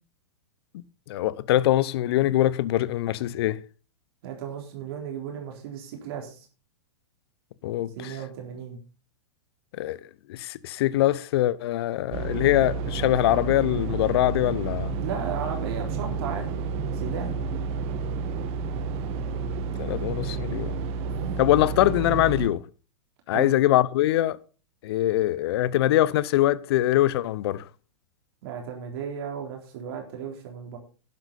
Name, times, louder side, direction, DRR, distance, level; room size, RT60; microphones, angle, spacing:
voice 1, 0.7-3.6 7.6-8.1 9.7-10.0 10.3-15.0 19.8-20.7 21.4-22.6 23.3-24.4 24.8-27.7, left 14 dB, 60° left, 0.8 m, -23 dB
voice 2, 4.2-6.5 8.0-8.8 15.0-16.6 16.9-17.4 21.0-21.4 23.3-23.6 28.4-30.8, right 7 dB, 55° right, 3.8 m, -35 dB
sound 1, 12.1-22.5, right 5 dB, 40° right, 1.6 m, -30 dB
12.0 x 10.5 x 4.2 m
hypercardioid pair, 115°, 15 cm